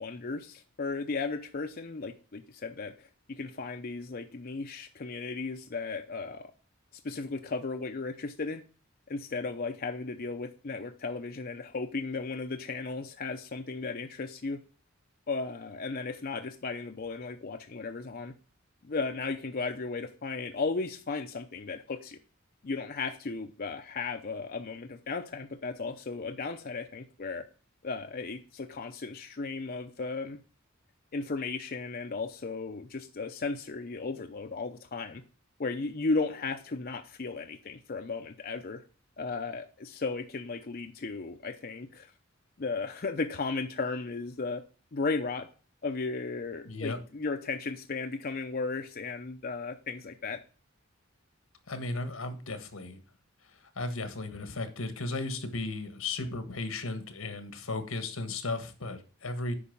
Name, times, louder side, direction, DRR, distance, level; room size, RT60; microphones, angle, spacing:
voice 1, 0.0-6.5 7.0-8.6 9.1-14.6 15.3-18.3 18.8-22.2 22.6-27.5 27.8-30.4 31.1-35.2 35.6-38.8 39.2-42.1 42.6-44.6 44.9-45.5 45.8-50.4, left 4 dB, 45° left, 6 dB, 0.6 m, -35 dB
voice 2, 46.6-47.0 51.7-53.0 53.7-59.5, left 2 dB, 85° left, 9 dB, 1.5 m, -35 dB
8.6 x 5.4 x 5.4 m, 0.37 s
head